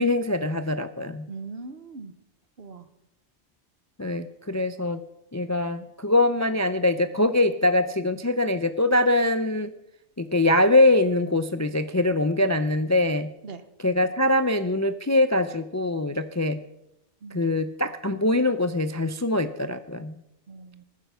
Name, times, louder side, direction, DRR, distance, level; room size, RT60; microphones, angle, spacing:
voice 1, 0.0-1.3 4.0-5.0 5.3-9.7 10.2-13.3 13.8-16.6 17.3-20.1, left 2 dB, 20° left, 11 dB, 0.4 m, -23 dB
voice 2, 1.3-2.1 2.6-2.9 13.4-13.6 17.2-17.6 20.5-20.8, right 4 dB, 60° right, 11 dB, 1.3 m, -40 dB
21.0 x 9.9 x 5.6 m, 0.84 s
omnidirectional pair, 1.2 m